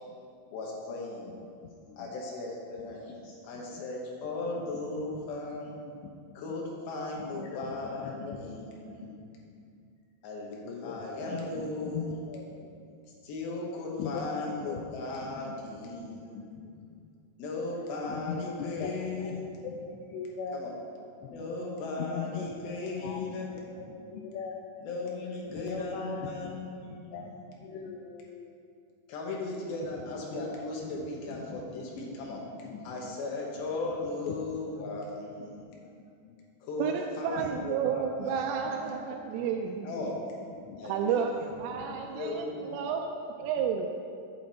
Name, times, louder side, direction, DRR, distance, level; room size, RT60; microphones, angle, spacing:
voice 1, 0.5-1.4 2.0-3.0 3.4-5.8 6.3-9.1 10.2-12.2 13.2-16.3 17.4-19.5 20.5-20.7 21.3-23.5 24.8-27.2 29.1-32.4 32.8-35.6 36.6-39.0 39.8-40.2 40.8-41.2 41.8-42.7, left 2 dB, 70° left, -2 dB, 2.4 m, -37 dB
voice 2, 6.0-6.4 7.3-9.7 10.7-11.5 11.8-12.8 13.9-14.9 15.2-15.6 16.1-17.0 18.1-20.6 21.2-21.5 22.0-22.6 23.0-24.6 25.5-28.5 31.3-31.9 32.3-33.0 34.3-34.4 34.8-35.0 35.4-36.0 36.2-36.4 37.3-37.7 38.9-39.4 40.0-40.1 40.6-40.8 41.7-42.0 42.6-43.0 43.6-43.7, left 6 dB, 90° left, 2 dB, 2.5 m, -41 dB
voice 3, 36.8-39.9 40.9-41.3 41.6-42.5 42.7-43.9, right 7 dB, 85° right, 2 dB, 3.1 m, -31 dB
8.6 x 7.4 x 4.4 m, 2.4 s
omnidirectional pair, 5.6 m